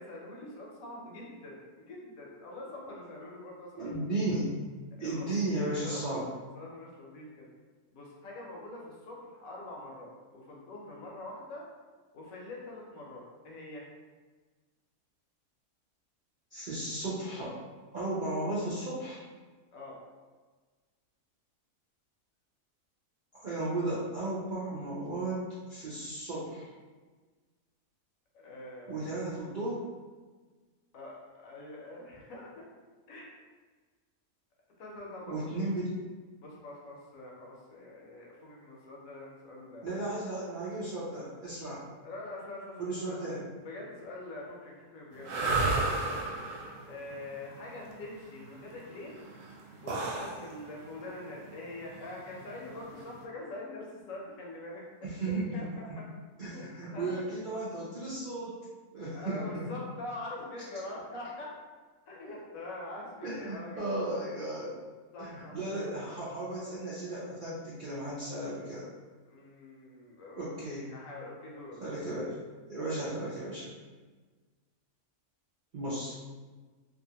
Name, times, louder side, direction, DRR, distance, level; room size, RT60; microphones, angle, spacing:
voice 1, 0.0-4.0 5.0-5.3 5.8-6.2 6.5-7.5 7.9-11.6 12.1-13.9 19.7-20.0 28.3-29.2 30.9-32.6 33.1-33.3 34.8-35.7 36.4-39.9 42.0-43.2 43.6-46.4 46.9-49.2 49.8-54.8 55.2-56.1 56.5-56.6 56.9-57.1 59.1-61.5 62.1-64.2 65.1-65.9 69.3-71.9, left 2 dB, 70° left, -3 dB, 1.0 m, -44 dB
voice 2, 3.8-4.5 5.0-6.2 16.5-17.5 17.9-19.2 23.3-26.7 28.9-29.8 35.3-36.0 39.8-41.9 42.8-43.5 55.0-55.5 56.4-58.6 58.9-59.7 63.2-64.8 65.2-68.9 70.4-70.9 71.8-72.3 72.7-73.7 75.7-76.2, right 2 dB, 60° right, -9 dB, 0.5 m, -35 dB
sound 1, 45.2-53.2, right 3 dB, 85° right, 1.1 m, -34 dB
2.6 x 2.4 x 2.8 m, 1.4 s
omnidirectional pair, 1.6 m